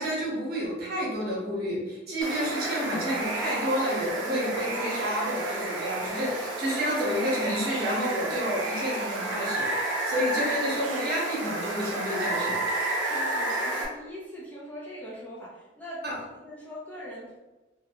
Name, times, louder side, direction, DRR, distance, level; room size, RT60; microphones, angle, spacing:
voice 1, 0.0-12.6 16.0-16.2, equal, 55° right, -5 dB, 1.0 m, -30 dB
Water, 2.2-13.9, right 2 dB, 85° right, 0.5 m, -31 dB
voice 2, 13.0-17.4, equal, 10° left, -8 dB, 0.6 m, -41 dB
2.5 x 2.2 x 2.9 m, 1.1 s
head